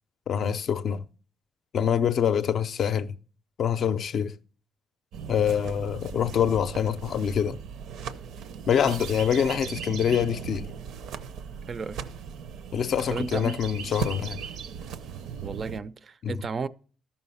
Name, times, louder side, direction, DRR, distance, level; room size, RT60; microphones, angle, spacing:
voice 1, 0.3-1.0 1.7-3.1 3.6-4.4 5.3-7.6 8.7-10.7 12.7-14.4 16.2-16.4, left 8 dB, 50° left, 0.5 m, -25 dB
sound 1, 5.1-15.8, right 7 dB, 80° right, 0.7 m, -38 dB
voice 2, 11.7-12.0 13.1-13.5 15.4-16.7, right 4 dB, 35° right, 0.4 m, -33 dB
13.5 x 5.6 x 5.5 m
cardioid pair, 150°, 0 cm